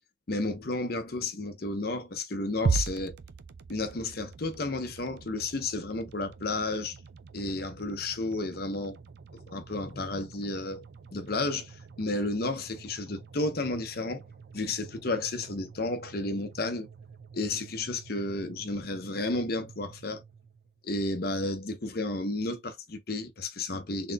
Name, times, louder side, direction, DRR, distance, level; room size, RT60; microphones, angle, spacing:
voice 1, 0.3-3.2 3.7-7.0 7.3-9.0 9.5-10.8 11.1-14.2 14.5-16.9 17.3-20.2 20.8-24.1, left 2 dB, 55° left, 0.7 m, -32 dB
sound 1, 2.7-20.9, right 5 dB, 55° right, 0.4 m, -40 dB
4.0 x 3.7 x 2.2 m
head